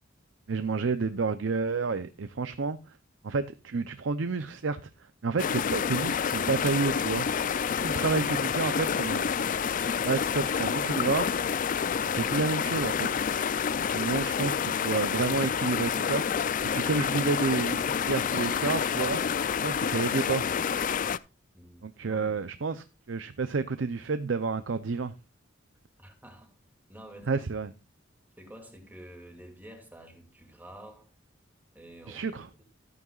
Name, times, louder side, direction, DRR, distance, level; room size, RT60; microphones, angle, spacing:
voice 1, 0.5-3.0 3.2-4.9 5.2-7.3 7.8-9.2 10.0-11.3 12.1-13.2 13.9-16.5 16.7-20.4 21.8-25.1 27.3-27.7 32.1-32.5, right 4 dB, 75° right, 0.6 m, -30 dB
sound 1, 5.4-21.2, left 7 dB, 45° left, 0.4 m, -28 dB
voice 2, 7.9-9.4 21.5-22.4 26.0-26.5 26.9-27.4 28.4-31.1 31.7-32.6, right 1 dB, 10° right, 2.5 m, -49 dB
14.0 x 9.3 x 2.4 m
head